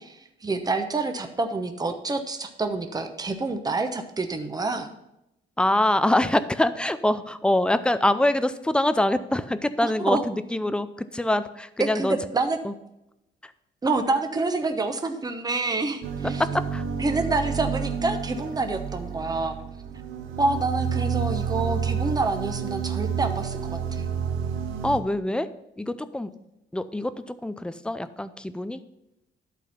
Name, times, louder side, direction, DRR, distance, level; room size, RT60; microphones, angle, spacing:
voice 1, 0.0-4.9 9.8-10.2 11.9-12.6 13.8-16.4 17.0-19.6 20.4-24.1, right 3 dB, 20° right, 6 dB, 0.9 m, -27 dB
voice 2, 5.6-10.9 11.1-12.2 12.6-12.7 13.4-13.5 16.2-16.8 24.8-25.5 25.8-26.3 26.7-28.8, left 1 dB, 5° left, 13 dB, 0.5 m, -24 dB
sound 1, 16.0-25.0, right 7 dB, 85° right, 0.9 m, -30 dB
11.5 x 4.1 x 5.5 m, 0.87 s
cardioid pair, 90°, 20 cm